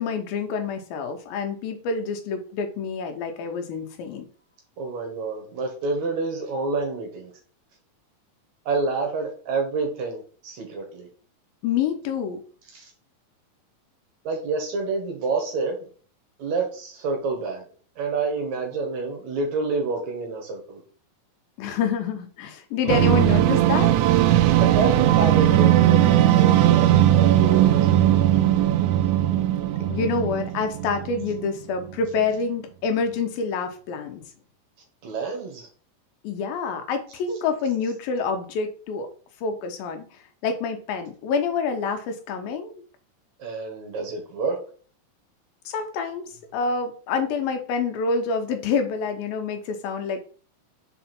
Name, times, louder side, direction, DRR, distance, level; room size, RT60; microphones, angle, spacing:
voice 1, 0.0-4.3 11.6-12.4 21.6-23.9 29.8-34.2 36.2-39.1 39.4-40.0 40.4-42.8 45.7-46.3 46.5-50.2, left 5 dB, 80° left, 6 dB, 2.7 m, -27 dB
voice 2, 4.8-7.3 8.7-11.1 12.7-12.9 14.2-15.9 16.4-17.6 18.0-20.8 24.6-28.3 35.0-35.7 43.4-44.6, right 4 dB, 60° right, 2 dB, 2.3 m, -28 dB
sound 1, 22.9-31.5, right 12 dB, 85° right, 1.7 m, -18 dB
5.7 x 4.8 x 4.3 m, 0.42 s
omnidirectional pair, 4.1 m